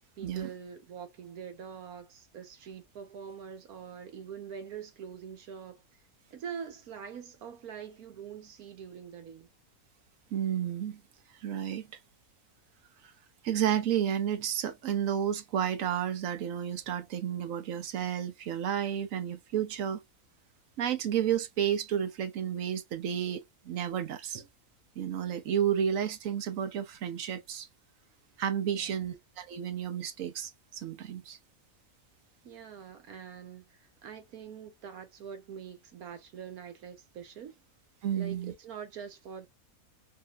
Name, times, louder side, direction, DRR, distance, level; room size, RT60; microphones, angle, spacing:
voice 1, 0.2-5.8 6.3-9.5 28.7-29.0 32.4-37.6 38.1-39.5, right 7 dB, 90° right, 1.4 m, -44 dB
voice 2, 10.3-11.0 11.3-11.9 13.4-20.0 20.8-24.4 25.0-27.7 28.4-31.4 38.0-38.5, right 9 dB, 70° right, 1.1 m, -31 dB
3.6 x 2.7 x 2.3 m
omnidirectional pair, 1.5 m